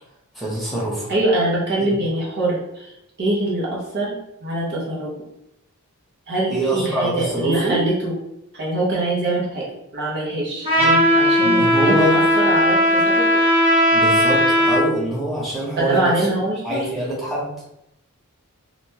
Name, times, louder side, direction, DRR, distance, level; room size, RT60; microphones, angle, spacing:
voice 1, 0.3-1.1 1.8-1.9 6.5-7.8 10.8-10.9 11.4-12.2 13.9-16.3 16.6-17.5, right 1 dB, ahead, -8 dB, 1.0 m, -24 dB
voice 2, 1.1-5.1 6.3-8.1 8.5-9.6 9.9-13.3 15.8-16.8, right 2 dB, 50° right, -5 dB, 0.9 m, -24 dB
Trumpet, 10.6-14.9, equal, 25° right, 1.3 m, -17 dB
3.5 x 2.4 x 2.8 m, 0.81 s
head